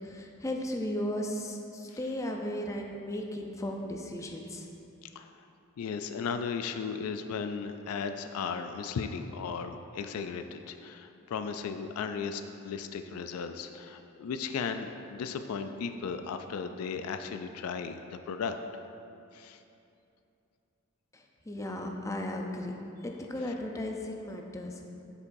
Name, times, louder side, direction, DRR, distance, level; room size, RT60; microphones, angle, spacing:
voice 1, 0.0-4.7 21.1-22.7 23.0-24.8, left 1 dB, 15° left, 1 dB, 0.5 m, -35 dB
voice 2, 5.8-18.6 19.3-19.6, left 5 dB, 80° left, 8 dB, 0.3 m, -36 dB
6.9 x 6.8 x 2.6 m, 2.7 s
head